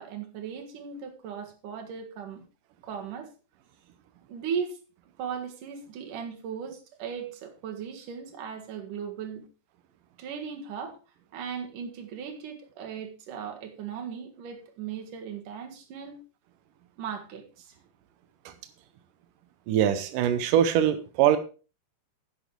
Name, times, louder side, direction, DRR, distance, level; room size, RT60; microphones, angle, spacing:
voice 1, 0.0-2.4 2.8-3.3 4.3-4.8 5.2-9.5 10.2-11.0 11.3-16.2 17.0-17.8, right 7 dB, 60° right, 4 dB, 3.0 m, -37 dB
voice 2, 19.7-21.4, right 10 dB, 80° right, 10 dB, 1.9 m, -22 dB
10.5 x 8.4 x 4.6 m, 0.34 s
omnidirectional pair, 4.8 m